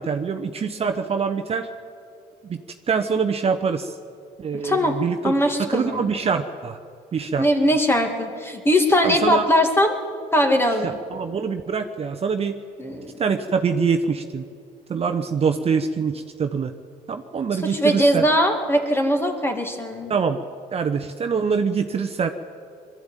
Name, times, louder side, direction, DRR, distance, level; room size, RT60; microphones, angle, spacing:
voice 1, 0.0-1.7 2.5-2.6 2.9-3.9 4.4-5.3 5.7-6.8 7.1-7.5 9.0-9.5 10.8-12.6 13.2-14.4 14.9-16.7 17.1-18.2 20.1-20.4 20.7-22.3, right 5 dB, 35° right, 6 dB, 1.0 m, -24 dB
voice 2, 4.5-5.0 5.2-6.1 7.4-9.9 10.3-11.0 12.8-13.1 17.6-20.1, equal, 15° left, 4 dB, 2.3 m, -20 dB
21.5 x 13.5 x 9.2 m, 2.3 s
cardioid pair, 110°, 17 cm